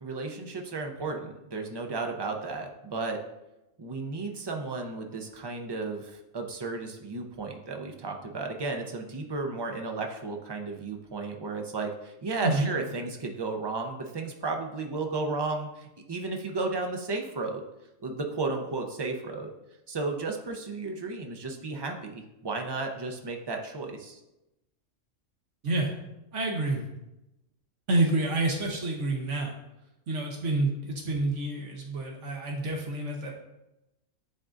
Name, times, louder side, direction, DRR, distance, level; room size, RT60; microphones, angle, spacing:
voice 1, 0.0-3.2 3.8-17.6 18.0-19.5 19.9-24.2, right 3 dB, 30° right, 3 dB, 0.4 m, -33 dB
voice 2, 26.3-26.8 27.9-29.5 30.1-33.3, right 2 dB, 70° right, 0 dB, 1.2 m, -28 dB
10.5 x 3.7 x 2.5 m, 0.93 s
omnidirectional pair, 1.3 m